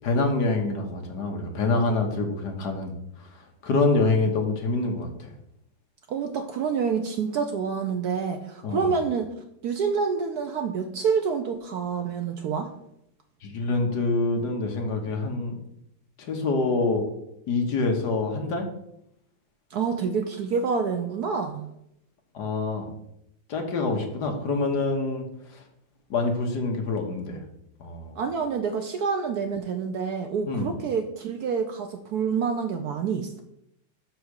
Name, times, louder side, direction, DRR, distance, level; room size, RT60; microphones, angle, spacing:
voice 1, 0.0-5.3 8.6-8.9 13.4-15.5 16.2-17.1 17.5-18.7 22.3-22.9 23.5-25.6 26.1-27.4 27.8-28.2 30.5-30.7, left 3 dB, 60° left, 3 dB, 1.6 m, -26 dB
voice 2, 6.1-9.3 9.6-12.7 19.7-21.7 28.2-33.4, right 6 dB, 70° right, 6 dB, 1.0 m, -27 dB
6.3 x 4.8 x 6.3 m, 0.78 s
omnidirectional pair, 2.1 m